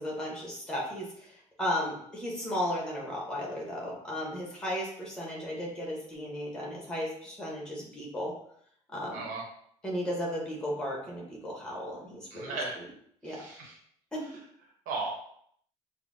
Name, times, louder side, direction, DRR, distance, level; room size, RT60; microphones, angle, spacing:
voice 1, 0.0-8.3 8.9-9.2 9.8-12.9 13.2-13.4 14.1-14.2, equal, 5° left, -3 dB, 0.9 m, -35 dB
voice 2, 9.1-9.4 12.3-12.8 13.2-13.7 14.9-15.1, right 3 dB, 85° right, -1 dB, 0.9 m, -35 dB
5.2 x 2.0 x 2.6 m, 0.66 s
cardioid pair, 175°, 13 cm